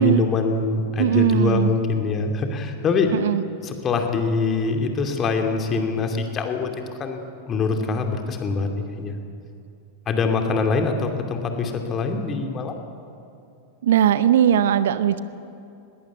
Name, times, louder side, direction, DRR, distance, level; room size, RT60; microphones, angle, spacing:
voice 1, 0.0-3.1 3.6-9.2 10.1-12.8, left 4 dB, 25° left, 4 dB, 2.6 m, -24 dB
voice 2, 1.0-1.7 3.2-3.4 13.8-15.2, right 10 dB, 60° right, 14 dB, 0.8 m, -19 dB
20.5 x 19.0 x 8.4 m, 2.6 s
figure-of-eight pair, 90°, 0 cm